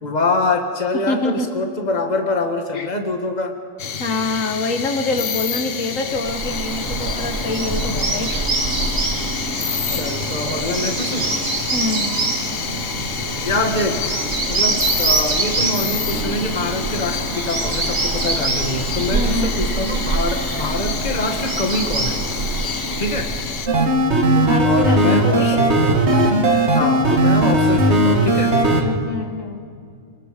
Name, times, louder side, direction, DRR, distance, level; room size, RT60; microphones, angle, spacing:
voice 1, 0.0-3.6 9.9-11.3 13.2-14.1 14.5-22.2 23.0-23.3 24.6-25.5 26.7-28.5, left 2 dB, 30° left, 4 dB, 1.8 m, -24 dB
voice 2, 1.1-1.5 2.7-2.9 4.0-8.4 11.7-12.2 19.1-19.6 24.3-25.6 28.7-29.6, left 2 dB, 80° left, 5 dB, 1.8 m, -25 dB
sound 1, 3.8-23.7, left 7 dB, 50° left, 1.0 m, -28 dB
Bird vocalization bird call bird song, 6.1-24.1, right 3 dB, 75° right, 2.5 m, -25 dB
sound 2, 23.7-28.8, right 1 dB, 55° right, 2.1 m, -16 dB
28.0 x 21.0 x 5.2 m, 2.2 s
omnidirectional pair, 1.4 m